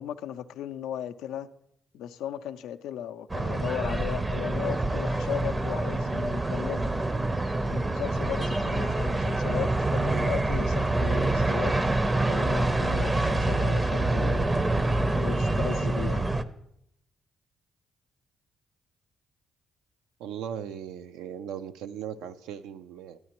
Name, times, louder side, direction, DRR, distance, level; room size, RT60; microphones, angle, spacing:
voice 1, 0.0-1.5 1.9-6.9 7.7-11.8 12.1-14.7 15.1-16.3, left 10 dB, 85° left, 0.3 m, -36 dB
sound 1, 3.3-16.4, right 2 dB, 25° right, 0.5 m, -26 dB
voice 2, 20.2-23.2, right 9 dB, 90° right, 0.4 m, -38 dB
12.5 x 9.4 x 2.9 m
supercardioid pair, 65°, 0 cm